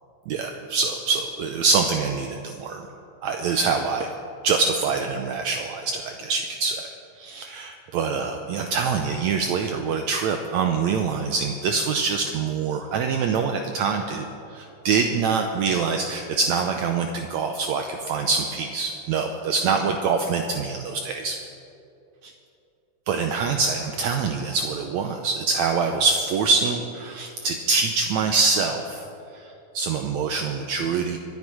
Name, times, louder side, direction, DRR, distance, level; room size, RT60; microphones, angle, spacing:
voice 1, 0.3-2.8 3.2-4.1 4.4-6.9 7.2-14.3 14.5-21.4 23.1-29.0 29.7-31.2, right 5 dB, 75° right, 5 dB, 1.8 m, -25 dB
25.5 x 9.6 x 4.9 m, 2.7 s
omnidirectional pair, 3.7 m